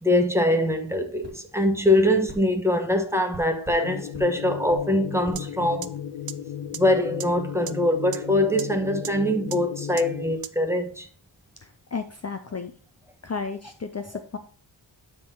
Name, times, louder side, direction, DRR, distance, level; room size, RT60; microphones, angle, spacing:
voice 1, 0.0-5.9 6.7-11.1, left 1 dB, 5° right, 1.0 m, -23 dB
sound 1, 1.2-1.4 2.3-2.4 3.3-3.8 4.1-4.3 4.7-4.8 5.3-5.4, right 2 dB, 20° right, 2.6 m, -42 dB
sound 2, 3.8-10.3, left 9 dB, 80° left, 0.6 m, -35 dB
sound 3, 5.4-5.5 5.8-5.9 6.3-6.4 6.7-6.8 7.2-7.3 7.7-7.8 8.1-8.2 8.6-8.7 9.0-9.1 9.5-9.6 10.0-10.1 10.4-10.5, right 9 dB, 50° right, 0.5 m, -33 dB
voice 2, 11.6-12.7 13.2-14.4, left 5 dB, 35° left, 0.6 m, -33 dB
9.6 x 3.8 x 4.6 m
wide cardioid pair, 105°, 48 cm